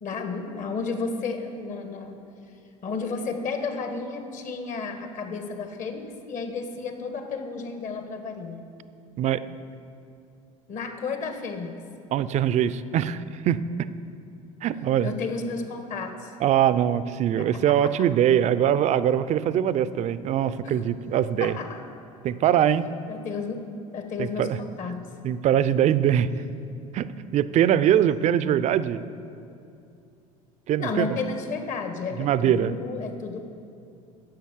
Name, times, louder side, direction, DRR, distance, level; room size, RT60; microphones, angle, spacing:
voice 1, 0.0-2.2 2.8-8.6 10.7-11.8 15.0-16.3 17.4-18.1 20.6-20.8 21.4-21.8 23.1-23.7 23.9-25.0 30.8-33.4, left 4 dB, 45° left, 6 dB, 1.6 m, -32 dB
voice 2, 12.1-13.9 14.6-15.1 16.4-21.6 22.2-22.9 24.2-24.6 25.2-26.3 26.9-29.0 30.7-31.2 32.2-32.7, right 10 dB, 40° right, 15 dB, 0.5 m, -22 dB
10.5 x 7.4 x 7.3 m, 2.6 s
hypercardioid pair, 80°, 18 cm